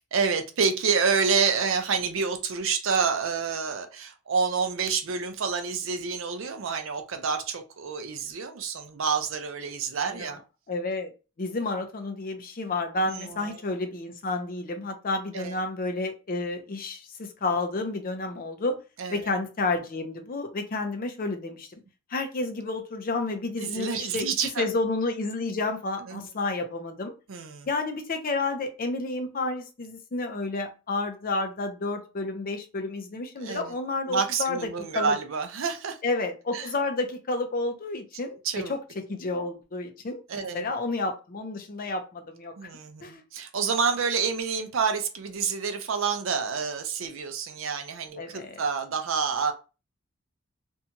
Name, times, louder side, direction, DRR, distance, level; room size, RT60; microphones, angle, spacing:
voice 1, 0.1-10.4 13.1-13.6 15.3-15.6 19.0-19.3 23.6-24.7 26.1-26.3 27.3-27.7 33.4-33.8 34.1-36.0 36.5-36.7 38.4-38.7 40.3-40.6 42.6-49.5, right 5 dB, 65° right, 7 dB, 0.5 m, -28 dB
voice 2, 10.7-11.1 11.4-18.8 19.1-21.8 22.1-24.3 24.6-27.1 27.7-34.6 34.9-35.2 36.0-42.5 43.0-43.2 48.2-48.6, left 3 dB, 40° left, 6 dB, 0.5 m, -30 dB
2.6 x 2.3 x 2.8 m, 0.31 s
head